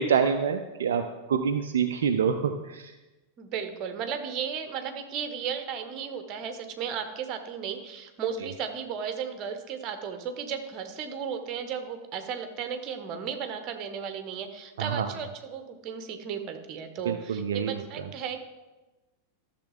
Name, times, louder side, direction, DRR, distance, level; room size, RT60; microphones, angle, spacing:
voice 1, 0.0-2.9 14.8-15.1 17.1-17.7, right 7 dB, 60° right, 6 dB, 0.5 m, -26 dB
voice 2, 3.4-18.4, right 7 dB, 35° right, 7 dB, 1.1 m, -35 dB
13.0 x 6.8 x 3.6 m, 1.1 s
figure-of-eight pair, 90°, 0 cm